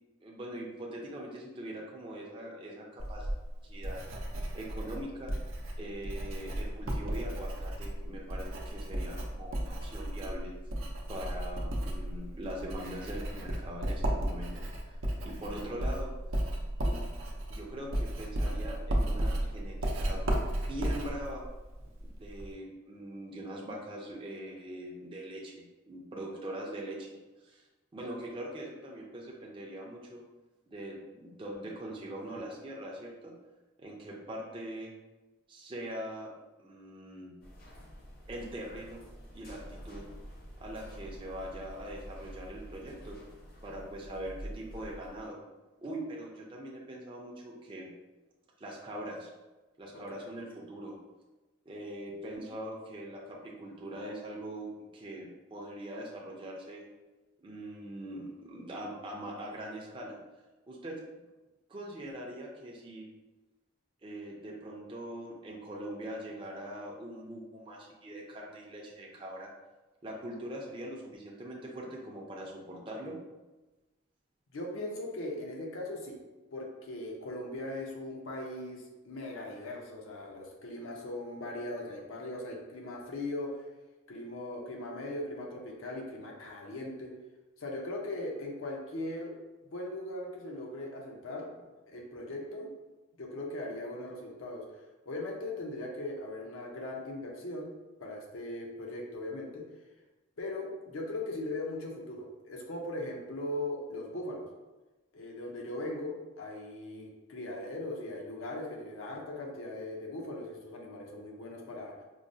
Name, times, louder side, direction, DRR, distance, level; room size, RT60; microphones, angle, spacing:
voice 1, 0.2-3.3 3.6-4.0 4.5-5.3 5.8-10.5 11.1-16.1 16.8-17.1 17.5-20.4 20.7-21.4 22.0-27.6 27.9-30.2 30.7-33.3 33.8-34.9 35.5-36.3 36.6-37.3 38.3-39.0 39.3-40.0 40.6-43.2 43.6-45.4 45.8-47.9 48.6-49.3 49.8-51.0 51.7-56.8 57.4-60.2 60.7-61.0 61.7-63.1 64.0-69.5 70.0-73.2, right 1 dB, 25° right, -3 dB, 0.4 m, -42 dB
Writing, 3.0-22.5, right 1 dB, 80° right, 0.6 m, -34 dB
sound 1, 37.4-45.3, equal, 45° left, 0.6 m, -48 dB
voice 2, 49.9-50.2 74.5-76.2 76.5-83.6 84.1-87.1 87.6-89.3 89.7-92.7 93.2-94.6 95.1-97.7 98.0-99.6 100.4-104.5 105.1-112.0, left 1 dB, 85° left, 0 dB, 0.6 m, -39 dB
4.7 x 2.0 x 2.6 m, 1.1 s
head